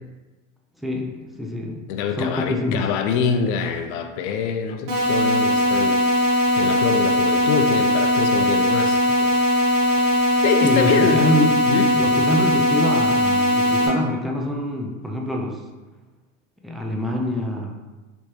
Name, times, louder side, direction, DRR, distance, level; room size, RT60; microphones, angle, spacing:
voice 1, 0.8-1.9 2.2-2.8 10.6-11.5 11.9-15.6 16.6-17.8, left 1 dB, ahead, 0 dB, 0.4 m, -25 dB
voice 2, 1.9-6.0 6.6-9.5 10.0-10.2 10.4-11.2 11.6-11.9, left 6 dB, 55° left, 6 dB, 0.5 m, -25 dB
sound 1, 4.9-13.9, left 1 dB, 65° right, 1.3 m, -19 dB
3.1 x 3.1 x 2.8 m, 1.2 s
hypercardioid pair, 85°, 40 cm